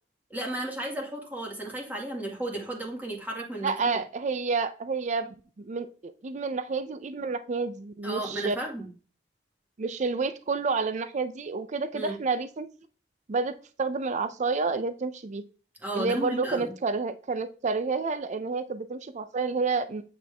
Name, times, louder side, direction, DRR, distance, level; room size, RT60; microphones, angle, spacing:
voice 1, 0.3-4.0 8.0-8.9 11.9-12.2 15.8-16.7, right 1 dB, 10° right, -1 dB, 1.9 m, -34 dB
voice 2, 3.6-8.6 9.8-12.7 13.3-15.4 15.9-20.0, right 4 dB, 40° right, 11 dB, 0.5 m, -29 dB
8.5 x 4.5 x 3.4 m, 0.37 s
head